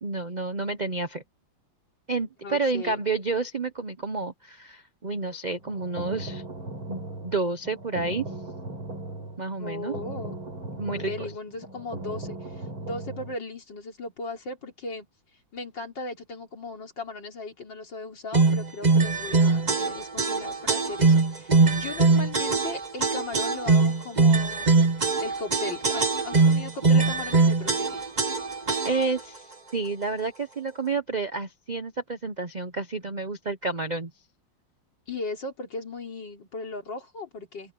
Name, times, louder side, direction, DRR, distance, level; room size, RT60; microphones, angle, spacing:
voice 1, 0.0-1.2 2.1-6.4 6.9-8.3 9.4-9.9 10.8-11.3 28.8-34.1, right 3 dB, 55° right, 0.5 m, -30 dB
voice 2, 2.4-3.0 9.6-10.4 11.0-15.1 15.5-24.7 25.2-28.1 35.1-37.7, left 3 dB, 60° left, 4.2 m, -37 dB
sound 1, 5.5-13.3, right 2 dB, 85° right, 6.4 m, -38 dB
sound 2, 18.3-29.2, right 3 dB, 25° right, 1.4 m, -22 dB
open air
omnidirectional pair, 2.2 m